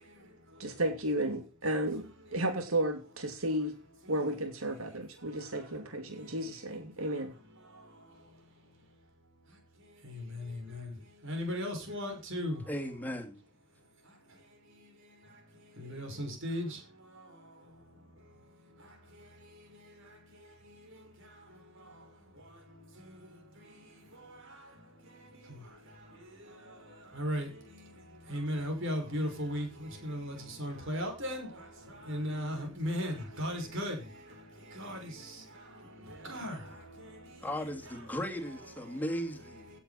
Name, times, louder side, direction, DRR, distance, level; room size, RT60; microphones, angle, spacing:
voice 1, 0.6-2.1 2.3-3.7 4.1-7.3, right 1 dB, 80° right, 2.8 m, -33 dB
voice 2, 10.0-10.9 11.2-12.6 15.8-16.8 27.1-27.5 28.3-31.5 32.1-34.0 34.7-35.1 36.2-36.6, equal, 65° right, 6.0 m, -35 dB
voice 3, 12.7-13.4 37.4-39.7, equal, 10° left, 2.6 m, -36 dB
17.0 x 8.5 x 4.3 m
head